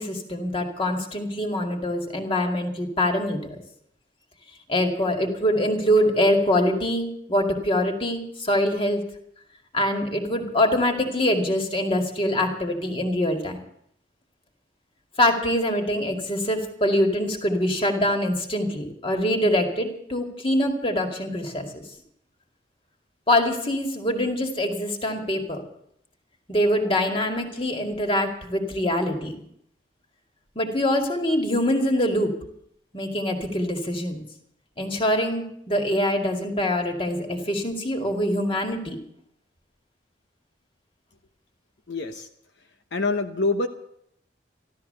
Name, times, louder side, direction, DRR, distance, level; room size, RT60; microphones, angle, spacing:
voice 1, 0.0-3.6 4.7-9.0 9.7-13.6 15.2-21.8 23.3-25.6 26.5-29.3 30.6-32.3 32.9-34.2 34.8-39.0, left 1 dB, 30° left, 3 dB, 2.2 m, -24 dB
voice 2, 41.9-42.3 42.9-43.7, left 3 dB, 70° left, 5 dB, 1.0 m, -25 dB
14.5 x 13.0 x 6.7 m, 0.73 s
head